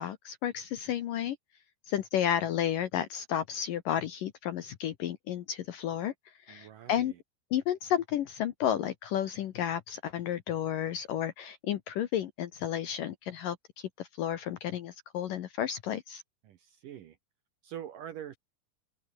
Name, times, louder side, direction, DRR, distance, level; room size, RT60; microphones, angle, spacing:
voice 1, 0.0-1.4 1.9-6.1 6.5-7.1 7.5-16.2, left 10 dB, 70° left, 2.2 m, -32 dB
voice 2, 6.5-7.2 16.4-17.2 17.6-18.4, right 10 dB, 65° right, 2.2 m, -44 dB
open air
omnidirectional pair, 5.1 m